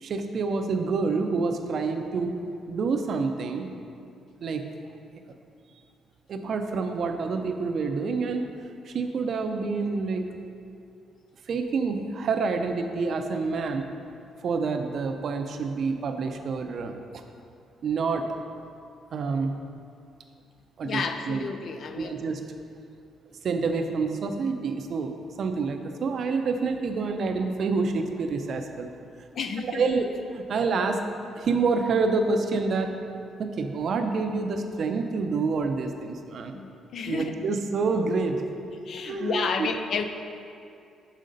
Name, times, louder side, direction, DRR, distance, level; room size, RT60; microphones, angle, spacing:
voice 1, 0.0-2.4 2.7-3.7 4.4-4.7 6.3-8.5 8.9-10.3 11.5-13.9 14.4-17.2 17.8-18.2 19.1-19.5 20.8-21.5 22.0-22.4 23.4-28.9 29.6-31.0 31.3-32.9 33.4-36.5 37.1-38.4 39.0-39.7, right 4 dB, 60° right, 6 dB, 0.5 m, -27 dB
voice 2, 20.8-22.2 29.4-29.8 36.5-36.7 36.9-37.3 38.9-40.0, left 5 dB, 60° left, 7 dB, 0.5 m, -30 dB
6.4 x 5.2 x 3.9 m, 2.5 s
cardioid pair, 90°, 0 cm